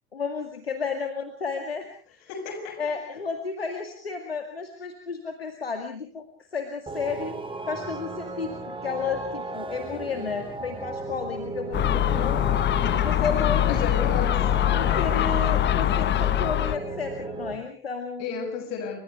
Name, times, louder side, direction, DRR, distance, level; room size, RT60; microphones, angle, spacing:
voice 1, 0.1-2.2 2.8-6.2 6.5-7.4 7.7-12.5 12.9-13.8 14.7-18.3, left 5 dB, 85° left, 2.1 m, -32 dB
voice 2, 2.3-3.0 13.7-14.5 18.2-19.0, left 6 dB, 60° left, 7.3 m, -32 dB
sound 1, 6.9-17.5, right 3 dB, 15° right, 4.5 m, -36 dB
Gull seagull, 11.7-16.8, left 12 dB, 40° left, 1.1 m, -23 dB
29.5 x 25.5 x 3.5 m
figure-of-eight pair, 60°, 29 cm